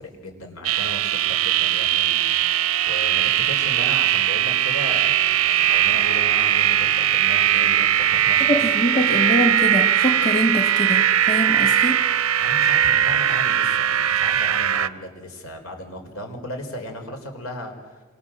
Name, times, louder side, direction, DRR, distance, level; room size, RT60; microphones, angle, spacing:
voice 1, 0.0-2.2 2.9-8.6 12.4-18.0, left 1 dB, 90° left, 4 dB, 4.8 m, -36 dB
sound 1, 0.6-14.9, right 10 dB, 90° right, 0.7 m, -20 dB
voice 2, 8.5-12.0, equal, 30° left, 5 dB, 1.8 m, -23 dB
27.5 x 25.0 x 7.6 m, 1.4 s
head